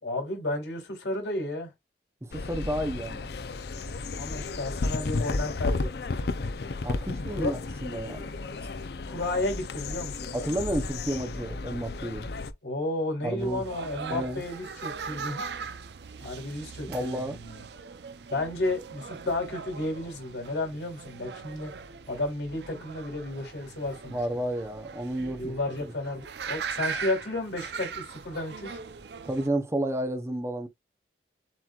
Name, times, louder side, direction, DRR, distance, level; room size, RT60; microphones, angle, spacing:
voice 1, 0.0-1.7 4.2-5.9 7.3-7.5 9.1-10.6 12.6-15.4 16.2-17.6 18.3-21.7 22.1-24.2 25.3-28.8, left 2 dB, 90° left, 3.0 m, -32 dB
voice 2, 2.2-3.3 6.8-8.3 10.3-12.3 13.2-13.6 14.1-14.4 16.9-17.4 24.1-25.6 29.3-30.7, right 1 dB, 15° right, 0.7 m, -31 dB
sound 1, 2.3-12.5, left 3 dB, 60° left, 0.5 m, -33 dB
sound 2, 13.4-29.5, right 5 dB, 70° right, 0.5 m, -40 dB
7.5 x 3.0 x 2.3 m
head